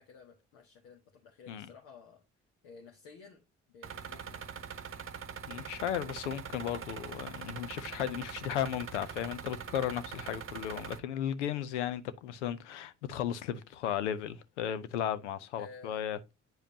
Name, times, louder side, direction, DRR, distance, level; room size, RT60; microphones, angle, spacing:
voice 1, 0.0-2.2 2.6-3.4 3.7-4.5 10.4-10.7 15.6-16.0, left 5 dB, 75° left, 1.2 m, -53 dB
sound 1, 3.8-11.0, right 7 dB, 40° right, 0.9 m, -43 dB
voice 2, 5.5-16.3, left 10 dB, 90° left, 0.6 m, -35 dB
9.2 x 4.9 x 2.7 m
hypercardioid pair, 45°, 34 cm